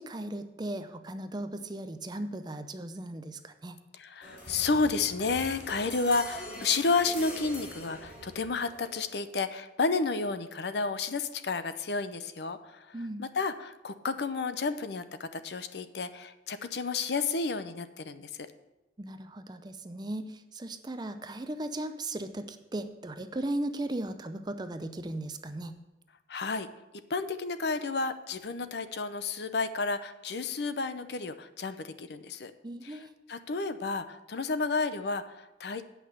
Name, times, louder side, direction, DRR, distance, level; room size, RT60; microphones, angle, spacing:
voice 1, 0.0-3.8 12.9-13.3 19.0-25.7 32.6-33.1, right 1 dB, 25° right, 9 dB, 0.6 m, -37 dB
voice 2, 3.9-18.3 26.3-26.7 27.1-32.5 32.8-35.8, left 4 dB, 65° left, 11 dB, 0.6 m, -31 dB
sound 1, 4.2-9.2, left 1 dB, 45° left, 2.6 m, -43 dB
8.5 x 5.7 x 8.1 m, 1.0 s
head